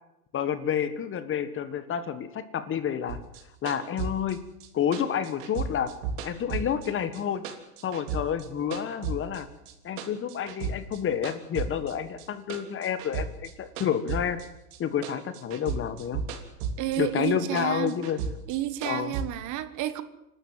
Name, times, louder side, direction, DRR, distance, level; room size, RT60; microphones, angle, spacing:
voice 1, 0.3-3.2 3.6-4.4 4.7-5.9 6.2-7.4 7.8-9.5 9.8-14.4 14.8-16.2 17.0-18.2 18.8-19.1, left 8 dB, 25° left, 13 dB, 1.6 m, -29 dB
sound 1, 3.1-7.2 7.4-9.4 9.7-11.0 11.2-14.8 15.0-17.0 17.2-19.2, right 5 dB, 60° right, 3.6 m, -34 dB
voice 2, 16.8-18.0 18.5-20.0, right 14 dB, 40° right, 13 dB, 1.6 m, -30 dB
26.5 x 13.0 x 7.9 m, 0.90 s
hypercardioid pair, 115°, 45 cm